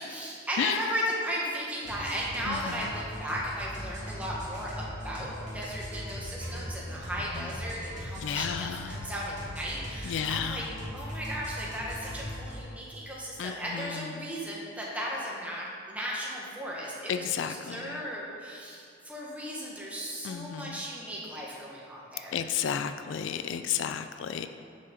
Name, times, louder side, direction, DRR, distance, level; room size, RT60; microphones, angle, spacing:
voice 1, 0.0-10.6 10.9-22.4, equal, 10° right, -5 dB, 1.4 m, -36 dB
sound 1, 1.8-12.6, equal, 40° right, 2.0 m, -39 dB
voice 2, 2.5-2.8 7.4-7.5 8.2-9.0 10.0-10.7 13.4-14.3 17.1-18.0 20.2-20.8 22.3-24.5, left 8 dB, 70° left, 10 dB, 0.3 m, -32 dB
9.8 x 6.4 x 3.9 m, 2.4 s
head